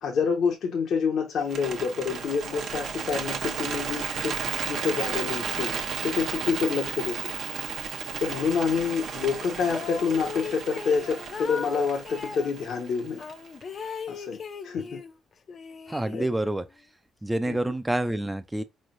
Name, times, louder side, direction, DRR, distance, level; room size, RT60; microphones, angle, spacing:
voice 1, 0.0-4.3 4.7-5.7 6.0-7.2 8.2-13.2 14.1-14.4 14.6-15.0 16.1-16.3 17.5-17.6, left 6 dB, 70° left, 0.8 m, -27 dB
Bird, 1.4-13.6, right 6 dB, 65° right, 0.7 m, -34 dB
sound 1, 9.6-12.5 13.2-15.2 15.5-16.6, left 6 dB, 50° left, 0.5 m, -38 dB
voice 2, 15.9-16.6 17.2-18.6, right 1 dB, 10° right, 0.4 m, -27 dB
4.3 x 3.2 x 2.5 m
cardioid pair, 90°, 0 cm